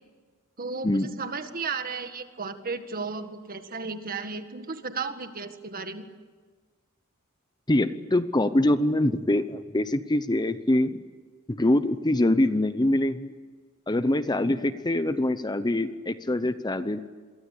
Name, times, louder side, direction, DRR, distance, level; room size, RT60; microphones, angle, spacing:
voice 1, 0.6-6.1, right 4 dB, 40° right, 8 dB, 1.9 m, -34 dB
voice 2, 7.7-11.0 11.5-13.3 13.9-17.0, left 1 dB, 20° left, 12 dB, 0.8 m, -24 dB
28.0 x 23.0 x 8.5 m, 1.5 s
head